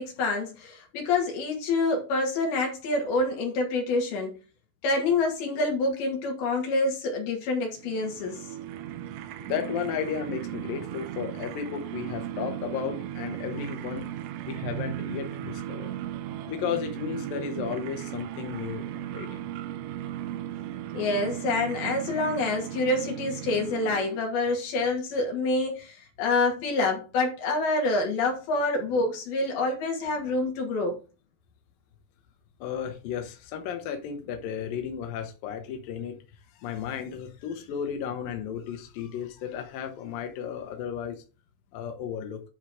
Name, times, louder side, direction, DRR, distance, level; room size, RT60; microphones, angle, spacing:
voice 1, 0.0-4.4 4.8-8.5 20.9-31.0, left 2 dB, 60° left, 4.0 m, -27 dB
sound 1, 7.7-24.4, right 12 dB, 80° right, 3.1 m, -36 dB
voice 2, 9.4-14.1 14.5-16.0 16.5-19.4 32.6-36.2 36.6-41.2 41.7-42.4, left 8 dB, 75° left, 2.1 m, -34 dB
11.0 x 4.0 x 4.9 m
omnidirectional pair, 5.4 m